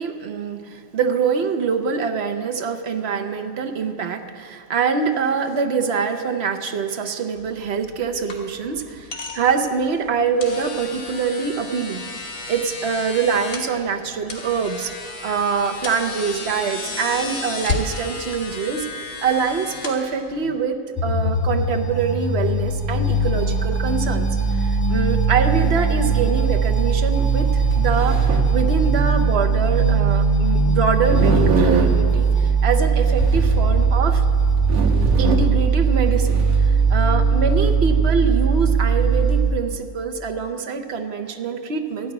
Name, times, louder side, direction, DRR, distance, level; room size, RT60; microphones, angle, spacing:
voice 1, 0.0-12.1 12.5-14.9 15.2-34.2 35.2-42.1, right 5 dB, 55° right, 5 dB, 1.0 m, -24 dB
sound 1, 7.4-20.6, left 3 dB, 70° left, 1.7 m, -33 dB
sound 2, 21.0-39.5, right 4 dB, 10° left, 2.3 m, -19 dB
sound 3, 25.4-25.5 25.8-25.9 26.6-26.7 27.6-29.1 31.0-32.4 33.0-33.8 34.3-34.4 34.7-35.7 36.0-36.6, right 3 dB, 85° right, 1.4 m, -24 dB
13.0 x 6.1 x 9.6 m, 2.2 s
omnidirectional pair, 1.5 m